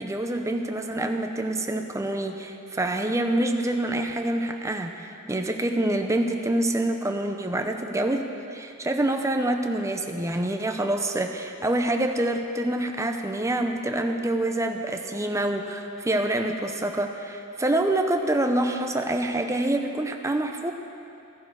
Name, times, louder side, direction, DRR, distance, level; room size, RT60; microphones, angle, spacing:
voice 1, 0.0-20.7, right 1 dB, 15° right, 4 dB, 0.7 m, -26 dB
15.0 x 11.0 x 4.8 m, 2.7 s
head